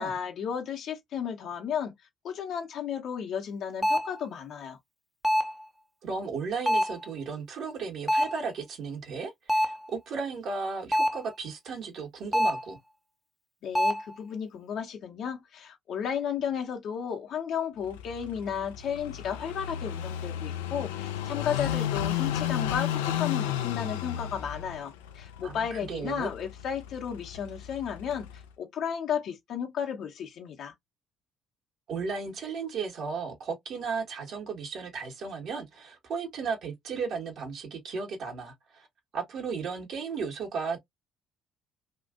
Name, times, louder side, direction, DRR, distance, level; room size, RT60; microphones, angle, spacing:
voice 1, 0.0-1.9 2.2-4.8 13.6-28.3 28.6-30.7, left 8 dB, 60° left, 1.0 m, -33 dB
sound 1, 3.8-4.2 5.2-5.6 6.7-7.1 8.1-8.4 9.5-9.9 10.9-11.3 12.3-12.7 13.7-14.1, equal, 5° left, 0.6 m, -25 dB
voice 2, 6.0-12.8 25.4-26.3 31.9-38.9 39.1-40.8, right 5 dB, 60° right, 1.3 m, -35 dB
Car passing by / Idling, 17.8-28.5, left 11 dB, 80° left, 0.4 m, -33 dB
3.0 x 2.5 x 2.5 m
hypercardioid pair, 55°, 0 cm